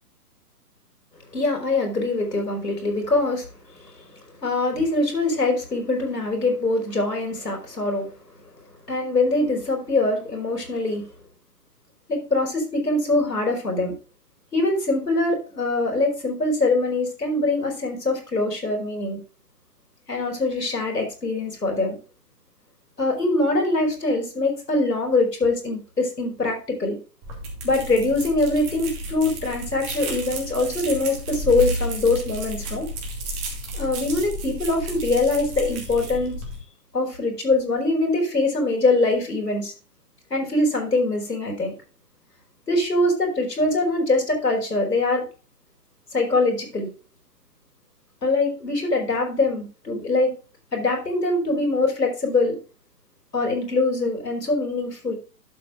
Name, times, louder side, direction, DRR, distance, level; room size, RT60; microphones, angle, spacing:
voice 1, 1.3-3.9 4.4-8.1 8.9-11.0 12.1-13.9 14.5-19.2 20.1-22.0 23.0-27.0 27.6-32.9 33.7-36.3 36.9-39.7 40.3-41.7 42.7-45.3 46.1-46.9 48.2-50.3 50.7-52.6 53.3-55.1, left 2 dB, 75° left, 1 dB, 5.0 m, -23 dB
sound 1, 27.2-36.6, right 1 dB, 20° right, 2.6 m, -32 dB
12.0 x 7.7 x 2.6 m, 0.34 s
figure-of-eight pair, 130°, 49 cm